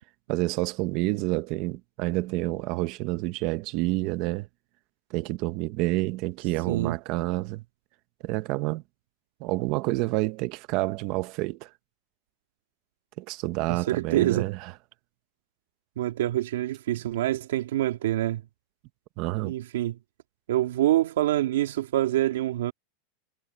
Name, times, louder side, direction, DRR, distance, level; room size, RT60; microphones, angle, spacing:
voice 1, 0.3-4.5 5.1-7.6 8.2-8.8 9.4-11.7 13.2-14.7 19.2-19.5, right 20 dB, 40° right, 1.1 m, -28 dB
voice 2, 13.7-14.5 16.0-18.4 19.4-20.0 20.5-22.7, right 14 dB, 80° right, 2.4 m, -26 dB
supercardioid pair, 165°, 0 cm